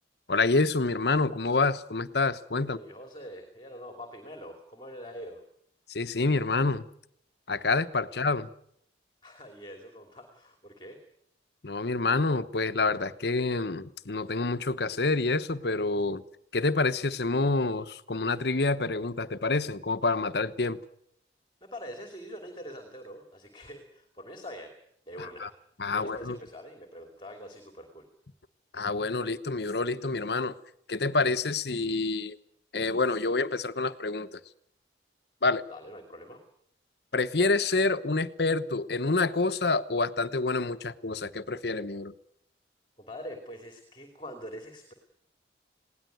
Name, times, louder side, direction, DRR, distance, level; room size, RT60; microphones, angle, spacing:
voice 1, 0.3-2.8 5.9-6.9 7.5-8.5 11.6-16.2 16.5-20.8 25.2-25.5 25.8-26.4 28.7-30.6 30.9-32.4 32.7-34.4 35.4-35.6 37.1-42.1, left 3 dB, 65° left, 13 dB, 1.0 m, -27 dB
voice 2, 2.6-5.4 9.2-11.0 21.6-24.7 25.1-25.5 25.8-28.1 35.7-36.4 43.0-44.9, equal, 25° left, 5 dB, 2.9 m, -44 dB
21.0 x 17.5 x 9.3 m, 0.72 s
head